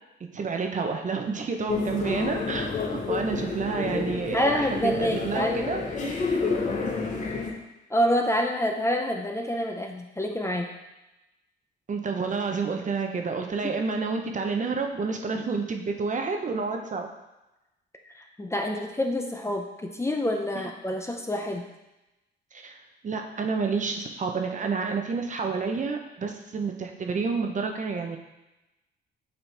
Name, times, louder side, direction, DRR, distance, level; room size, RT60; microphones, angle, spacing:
voice 1, 0.3-5.8 11.9-17.1 22.5-22.8 23.0-28.2, right 4 dB, 40° right, 3 dB, 0.7 m, -29 dB
sound 1, 1.7-7.5, left 4 dB, 40° left, 1.1 m, -29 dB
voice 2, 4.3-5.6 7.9-10.7 18.1-21.7, equal, 15° left, 2 dB, 0.6 m, -27 dB
7.0 x 4.1 x 3.4 m, 0.99 s
cardioid pair, 90°, 20 cm